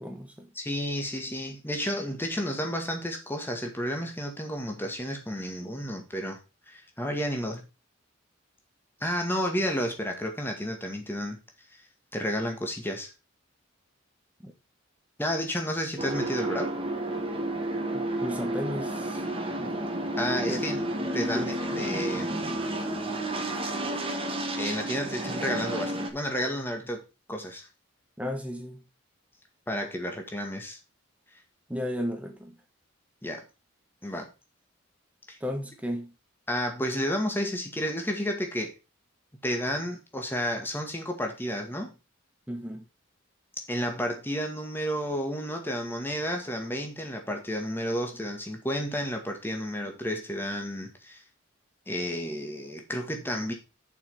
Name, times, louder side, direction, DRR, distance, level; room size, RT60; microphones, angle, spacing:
voice 1, 0.0-0.5 14.4-14.5 17.9-19.2 19.6-19.8 20.5-20.6 21.1-21.5 28.2-28.8 31.7-32.5 35.4-36.1 42.5-42.8, equal, 5° right, 1.5 m, -34 dB
voice 2, 0.6-6.4 6.7-7.7 9.0-11.4 12.1-13.1 15.2-16.7 20.2-20.8 21.1-22.4 24.6-27.0 27.3-27.7 29.7-30.8 33.2-33.4 34.0-34.3 35.3-35.4 36.5-38.7 39.4-41.9 43.7-51.2 51.9-53.5, equal, 10° left, 1.9 m, -31 dB
sound 1, 16.0-26.1, right 1 dB, 25° right, 1.6 m, -31 dB
7.4 x 5.8 x 5.6 m
head